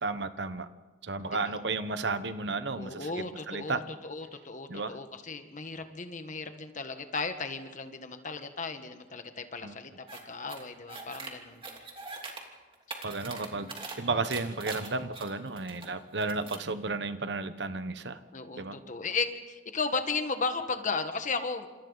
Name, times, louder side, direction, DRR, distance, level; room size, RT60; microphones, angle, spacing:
voice 1, 0.0-0.7 1.0-3.1 3.5-3.8 4.7-5.0 9.6-9.8 13.0-13.7 14.0-18.2 18.6-18.8, right 3 dB, 65° right, 11 dB, 1.1 m, -33 dB
voice 2, 2.7-11.6 13.5-13.7 18.3-21.7, left 4 dB, 45° left, 8 dB, 1.5 m, -35 dB
sound 1, 10.1-10.2 10.5-11.3 11.6-12.4 12.7-14.0 14.3-15.9 16.2-16.7, right 4 dB, 30° right, 3.0 m, -42 dB
29.0 x 27.0 x 4.1 m, 1.3 s
head